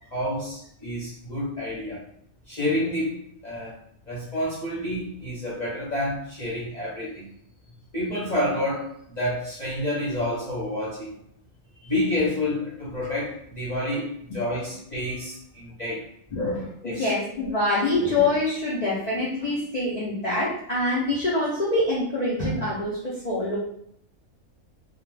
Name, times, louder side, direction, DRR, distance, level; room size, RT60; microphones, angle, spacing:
voice 1, 0.1-2.0 2.5-3.7 4.1-7.3 7.9-11.2 11.8-16.1 16.8-17.1, left 1 dB, 45° left, -7 dB, 0.6 m, -29 dB
voice 2, 16.3-23.6, left 2 dB, 85° left, -6 dB, 0.3 m, -25 dB
2.3 x 2.1 x 3.2 m, 0.71 s
omnidirectional pair, 1.5 m